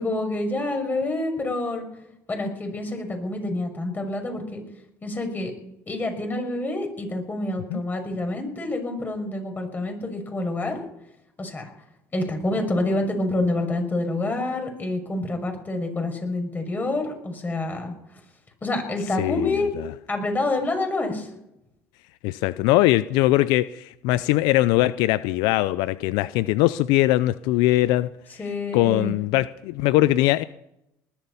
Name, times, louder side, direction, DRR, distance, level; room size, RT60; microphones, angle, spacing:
voice 1, 0.0-1.9 2.3-4.6 5.0-5.5 5.9-10.9 11.4-11.7 12.1-17.9 18.6-19.7 20.1-21.3 28.4-29.1, left 2 dB, 25° left, 5 dB, 6.1 m, -27 dB
voice 2, 19.2-19.6 22.2-28.1 28.7-30.4, left 16 dB, 75° left, 16 dB, 0.5 m, -21 dB
20.0 x 11.5 x 5.6 m, 0.82 s
supercardioid pair, 90°, 7 cm